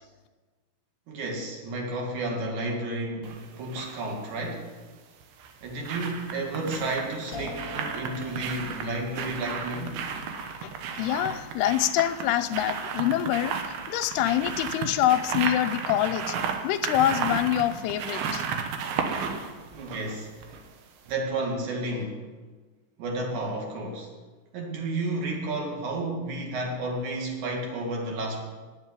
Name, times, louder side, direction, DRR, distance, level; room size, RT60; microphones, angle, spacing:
voice 1, 1.1-4.6 5.6-10.0 19.7-20.3 21.1-22.2 23.0-24.1 24.5-28.4, right 2 dB, 55° right, 0 dB, 3.4 m, -32 dB
sound 1, 3.2-4.0 5.2-20.7 21.1-21.2, right 6 dB, 75° right, 3.1 m, -34 dB
sound 2, 7.3-14.3, left 2 dB, 45° left, 0.6 m, -46 dB
voice 2, 11.0-13.5 13.9-16.4 16.6-18.4, left 12 dB, 90° left, 9 dB, 2.7 m, -25 dB
9.6 x 9.4 x 9.9 m, 1.3 s
omnidirectional pair, 4.6 m